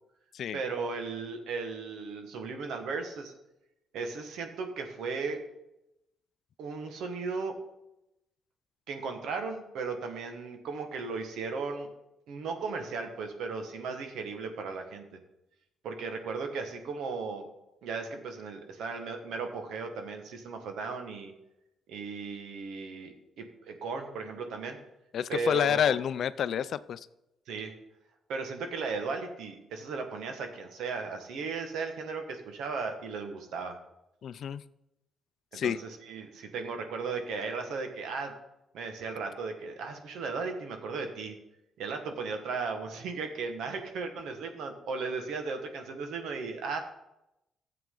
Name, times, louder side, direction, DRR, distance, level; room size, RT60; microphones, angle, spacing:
voice 1, 0.5-3.3 3.9-5.4 6.6-7.5 8.9-11.9 12.3-15.0 15.8-17.5 17.8-21.3 21.9-24.8 25.3-26.0 27.5-27.7 28.3-33.8 35.5-38.3 38.7-41.3 41.8-46.8, right 4 dB, 80° right, 5 dB, 1.5 m, -36 dB
voice 2, 25.1-27.1 34.2-34.6 35.5-35.8, left 9 dB, 65° left, 15 dB, 0.4 m, -29 dB
13.0 x 7.6 x 3.9 m, 0.89 s
cardioid pair, 90°, 0 cm